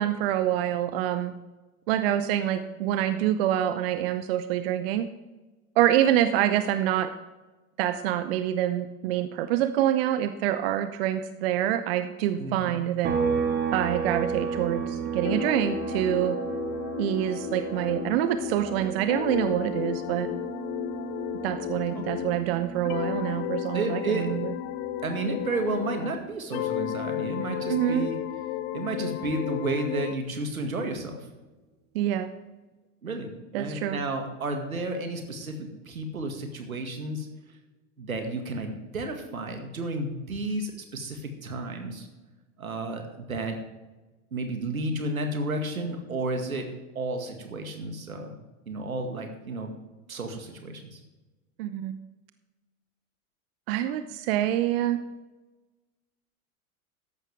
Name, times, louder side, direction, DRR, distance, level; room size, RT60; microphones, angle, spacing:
voice 1, 0.0-1.3 1.9-5.1 5.8-7.1 7.8-13.1 13.7-16.4 17.0-20.3 21.4-24.5 27.7-28.1 31.9-32.3 33.5-34.0 51.6-51.9 53.7-55.0, right 12 dB, 45° right, 11 dB, 0.7 m, -26 dB
voice 2, 12.4-12.8 21.9-22.3 23.7-24.3 25.0-28.2 28.7-31.2 33.0-37.3 38.0-42.1 42.6-43.6 44.3-46.7 47.0-48.4 48.7-49.7 50.1-51.0, right 2 dB, 75° right, 4 dB, 2.1 m, -32 dB
sound 1, 13.0-26.6 26.9-29.1, right 6 dB, 25° right, 1.7 m, -34 dB
sound 2, 15.2-22.5 22.8-26.2 26.5-30.2, left 14 dB, 25° left, 0.5 m, -33 dB
14.0 x 11.0 x 3.5 m, 1.2 s
figure-of-eight pair, 90°, 43 cm